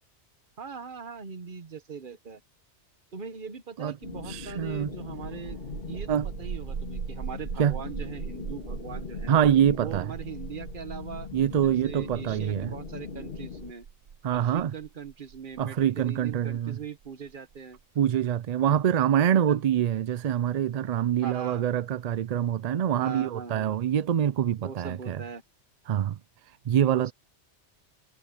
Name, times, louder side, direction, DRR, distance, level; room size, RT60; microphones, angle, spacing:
voice 1, 0.6-2.4 3.1-5.6 5.9-6.1 6.4-9.4 9.8-11.3 11.6-13.9 14.3-17.8 19.0-19.1 19.5-19.6 21.2-21.7 22.9-23.8 24.6-25.4 26.8-27.1, right 6 dB, 50° right, 1.2 m, -40 dB
sound 1, 4.0-13.7, left 6 dB, 55° left, 1.8 m, -41 dB
voice 2, 4.3-4.9 6.1-6.3 7.6-7.7 9.3-10.1 11.3-12.7 14.2-14.7 15.6-16.8 18.0-25.2 25.9-26.2 26.7-27.1, right 9 dB, 65° right, 0.4 m, -25 dB
sound 2, 5.1-18.5, right 7 dB, 90° right, 1.2 m, -40 dB
omnidirectional pair, 1.2 m